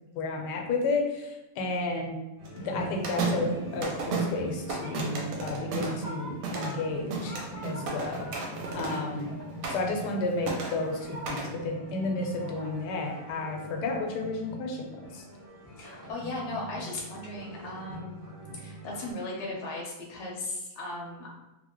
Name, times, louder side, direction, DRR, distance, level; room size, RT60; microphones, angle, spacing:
voice 1, 0.2-2.2 2.6-7.3 7.6-8.3 8.7-9.3 9.7-15.2, left 3 dB, 85° left, 2 dB, 1.2 m, -32 dB
sound 1, 2.4-19.1, equal, 25° right, 0.4 m, -43 dB
sound 2, 2.4-9.3 9.6-10.2 10.4-11.6, right 2 dB, 65° right, 1.0 m, -39 dB
sound 3, 3.2-11.3, right 4 dB, 90° right, 1.2 m, -36 dB
voice 2, 15.8-18.2 18.5-21.3, left 2 dB, 50° left, -3 dB, 0.8 m, -37 dB
2.8 x 2.7 x 2.9 m, 1.0 s
omnidirectional pair, 1.7 m